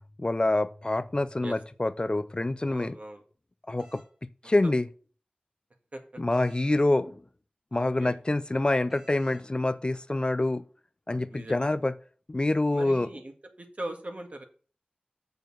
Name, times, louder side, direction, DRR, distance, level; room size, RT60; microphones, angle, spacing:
voice 1, 0.2-3.0 3.7-4.0 4.4-4.9 6.2-7.2 7.7-10.6 11.1-11.9 12.3-13.1, left 2 dB, 30° left, 0.4 m, -26 dB
voice 2, 2.7-3.2 5.9-6.2 7.7-8.2 11.3-11.7 12.7-13.3 13.6-14.4, right 1 dB, 45° right, 1.8 m, -40 dB
sound 1, 3.8-4.1 6.3-6.9 8.9-9.5, right 2 dB, 20° right, 2.2 m, -55 dB
6.7 x 6.5 x 6.1 m
wide cardioid pair, 70°, 3 cm